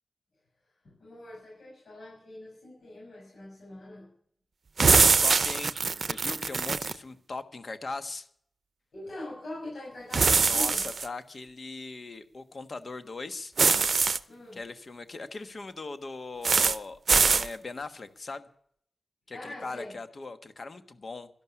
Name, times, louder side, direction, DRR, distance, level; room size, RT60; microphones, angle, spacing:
voice 1, 0.8-4.1 8.9-10.9 14.3-14.6 19.3-20.0, left 1 dB, 70° left, -5 dB, 7.0 m, -42 dB
sound 1, 4.8-7.0 10.1-11.1 13.6-14.2 16.4-16.8 17.1-17.5, right 4 dB, 60° right, 0.6 m, -23 dB
voice 2, 4.9-8.3 10.4-13.5 14.5-17.0 17.3-18.5 19.3-21.3, left 3 dB, 50° left, 10 dB, 1.4 m, -39 dB
12.5 x 12.0 x 9.7 m, 0.63 s
wide cardioid pair, 130°, 0 cm